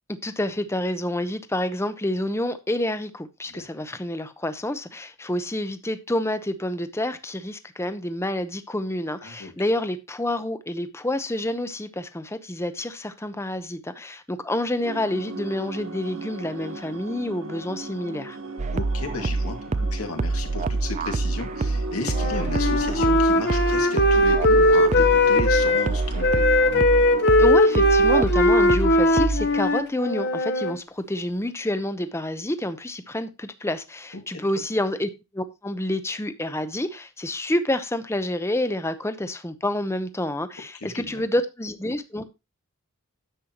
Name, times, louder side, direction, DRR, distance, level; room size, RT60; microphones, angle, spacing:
voice 1, 0.2-18.4 27.4-42.2, left 1 dB, 10° left, 0.7 m, -28 dB
voice 2, 9.2-9.5 18.7-26.4 34.1-34.2 40.7-41.2, left 3 dB, 80° left, 2.2 m, -34 dB
sound 1, 14.8-29.2, right 2 dB, 65° right, 1.1 m, -37 dB
sound 2, 18.6-29.6, right 3 dB, 30° right, 0.4 m, -26 dB
Wind instrument woodwind instrument, 22.1-25.9 26.2-30.7, left 1 dB, 50° left, 1.3 m, -19 dB
10.0 x 7.4 x 3.0 m
head